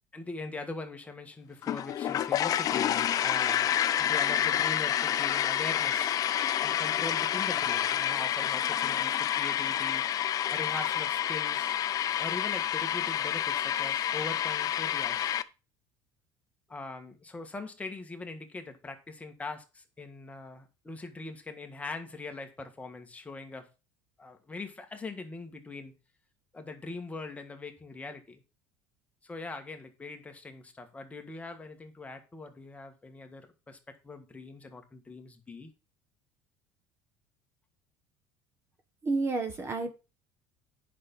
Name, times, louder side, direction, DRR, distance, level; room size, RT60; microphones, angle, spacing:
voice 1, 0.1-6.2 6.6-10.0 10.5-11.7 12.2-15.3 16.7-23.7 24.2-25.9 26.5-28.4 29.2-33.8 34.0-35.7, left 3 dB, 15° left, 1.6 m, -41 dB
sound 1, 1.6-15.4, left 10 dB, 40° left, 0.6 m, -29 dB
voice 2, 39.0-39.9, right 3 dB, 30° right, 1.3 m, -30 dB
9.5 x 5.9 x 5.4 m
cardioid pair, 125°, 9 cm